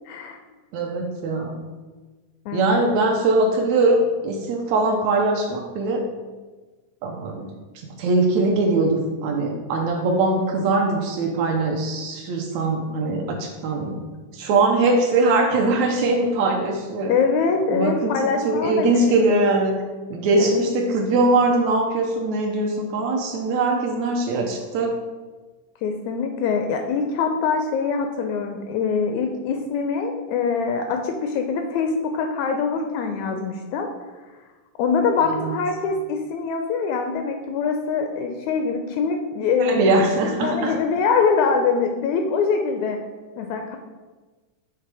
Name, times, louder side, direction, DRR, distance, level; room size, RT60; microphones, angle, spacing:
voice 1, 0.1-0.4 2.5-2.8 17.1-19.4 20.4-20.7 25.8-33.9 34.8-39.8 40.4-43.0 43.4-43.8, left 5 dB, 80° left, 4 dB, 1.7 m, -24 dB
voice 2, 0.7-1.6 2.5-6.0 7.0-7.5 7.8-14.0 14.3-17.1 17.7-19.8 20.1-25.0 35.4-35.6 39.6-40.8, right 2 dB, 75° right, 1 dB, 1.8 m, -21 dB
7.4 x 3.4 x 4.7 m, 1.3 s
omnidirectional pair, 3.6 m